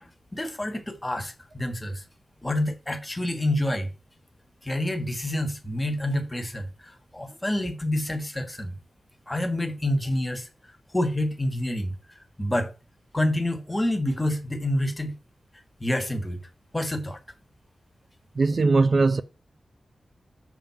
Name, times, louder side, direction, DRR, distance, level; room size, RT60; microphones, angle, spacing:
voice 1, 0.0-2.0 2.4-3.9 4.6-8.7 9.3-10.5 10.9-11.9 12.4-12.7 13.1-15.1 15.8-16.4 16.7-17.2, left 1 dB, 15° left, 1.4 m, -28 dB
voice 2, 18.4-19.2, right 3 dB, 45° right, 0.5 m, -20 dB
7.2 x 3.5 x 5.6 m
wide cardioid pair, 110°, 0 cm